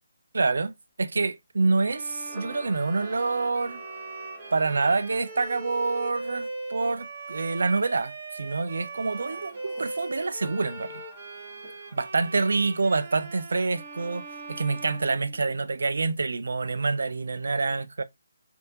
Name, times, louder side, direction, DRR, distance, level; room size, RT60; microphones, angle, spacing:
voice 1, 0.3-3.8 4.5-10.9 11.9-18.0, right 3 dB, 65° right, 0.5 m, -27 dB
Bowed string instrument, 1.8-15.9, right 3 dB, 35° right, 1.5 m, -40 dB
Camera, 2.2-5.5 9.1-9.8 10.3-12.2, equal, 10° right, 1.7 m, -47 dB
6.3 x 2.7 x 2.8 m
figure-of-eight pair, 145°, 0 cm